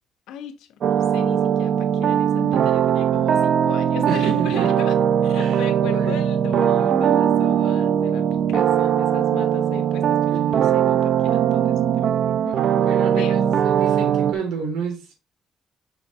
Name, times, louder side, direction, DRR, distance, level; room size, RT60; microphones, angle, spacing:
voice 1, 0.3-13.4, left 9 dB, 90° left, 1.2 m, -37 dB
sound 1, 0.8-14.3, right 9 dB, 65° right, 0.9 m, -20 dB
voice 2, 4.1-4.7 5.3-6.2 10.3-10.5 12.7-15.2, right 5 dB, 90° right, 3.7 m, -30 dB
7.0 x 6.3 x 3.8 m
cardioid pair, 90°, 0 cm